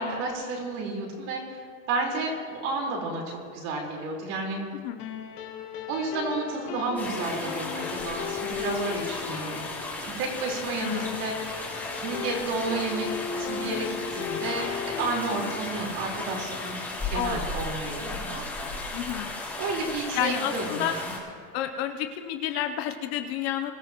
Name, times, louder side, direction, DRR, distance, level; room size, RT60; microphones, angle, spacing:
voice 1, 0.0-4.6 5.9-9.6 10.2-13.1 13.4-16.8 17.1-18.4 19.6-21.0, right 3 dB, 45° right, -2 dB, 4.5 m, -31 dB
sound 1, 5.0-17.7, left 8 dB, 90° left, 1.9 m, -37 dB
sound 2, 7.0-21.2, left 2 dB, 5° left, 3.1 m, -35 dB
voice 2, 10.8-11.2 17.1-17.5 18.9-19.4 20.1-21.0 21.5-23.7, left 10 dB, 45° left, 7 dB, 0.8 m, -30 dB
24.0 x 14.0 x 3.1 m, 2.2 s
supercardioid pair, 155°, 45 cm